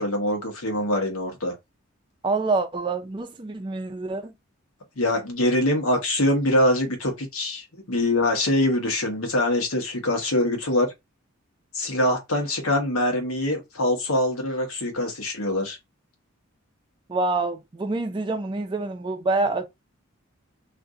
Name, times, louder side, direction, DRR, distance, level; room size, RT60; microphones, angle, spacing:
voice 1, 0.0-1.5 5.0-10.9 11.7-15.8, left 1 dB, 90° left, 1.1 m, -24 dB
voice 2, 2.2-4.3 17.1-19.6, right 3 dB, 20° right, 0.4 m, -26 dB
2.6 x 2.5 x 3.6 m
head